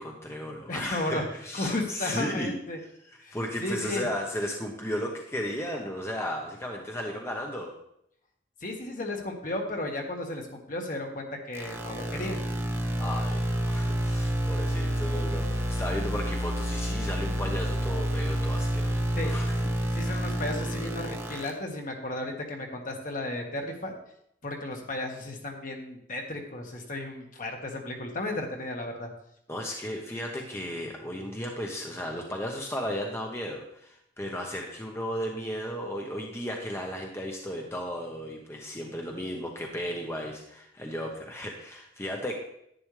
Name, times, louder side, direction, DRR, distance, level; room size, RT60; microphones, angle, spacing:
voice 1, 0.0-2.6 3.3-7.8 13.0-19.7 20.0-20.3 29.5-42.3, equal, 15° left, 0 dB, 1.0 m, -35 dB
voice 2, 0.7-1.2 1.5-2.8 3.2-4.1 8.6-12.4 19.2-19.3 19.9-23.9 24.4-29.1, left 2 dB, 45° left, 2 dB, 1.6 m, -34 dB
sound 1, 11.5-21.5, equal, 15° right, 1.4 m, -29 dB
11.0 x 9.9 x 3.3 m, 0.75 s
head